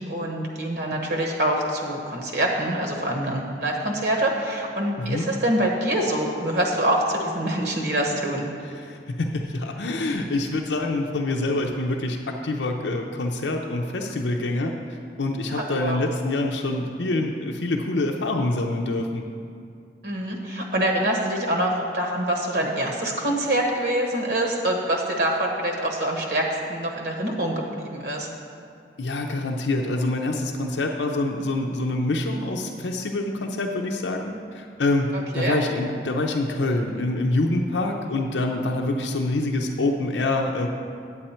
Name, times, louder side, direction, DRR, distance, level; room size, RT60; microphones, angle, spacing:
voice 1, 0.1-8.5 15.5-16.0 20.0-28.3 35.1-35.6, right 1 dB, 60° right, 1 dB, 1.2 m, -25 dB
voice 2, 8.8-14.7 15.2-19.2 29.0-40.7, left 2 dB, 80° left, 1 dB, 0.6 m, -26 dB
9.0 x 8.5 x 4.3 m, 2.4 s
head